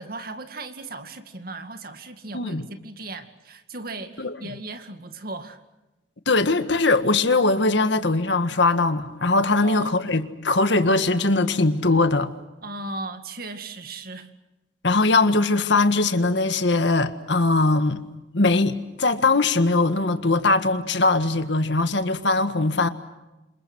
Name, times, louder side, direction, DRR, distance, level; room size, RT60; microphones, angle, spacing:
voice 1, 0.0-5.6 9.6-9.9 12.6-14.3, right 2 dB, 50° right, 2.3 m, -36 dB
voice 2, 6.2-12.3 14.8-18.0 18.3-22.9, left 3 dB, 70° left, 1.7 m, -21 dB
29.0 x 27.0 x 6.3 m
head